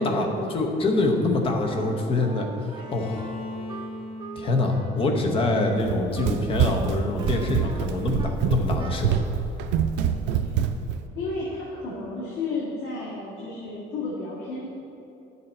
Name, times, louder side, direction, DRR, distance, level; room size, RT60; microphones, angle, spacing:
voice 1, 0.0-0.6 10.3-10.5 11.1-14.7, left 2 dB, 75° left, -7 dB, 1.9 m, -32 dB
voice 2, 0.5-3.3 4.4-9.2, left 2 dB, 30° left, 2 dB, 0.9 m, -25 dB
Wind instrument woodwind instrument, 1.7-8.5 8.8-9.2, right 5 dB, 25° right, 0.4 m, -42 dB
Bowed string instrument, 2.8-6.6, left 2 dB, 60° left, 0.7 m, -40 dB
Run, 5.8-11.0, right 8 dB, 85° right, 0.5 m, -26 dB
10.5 x 6.9 x 4.3 m, 2.8 s
cardioid pair, 170°, 18 cm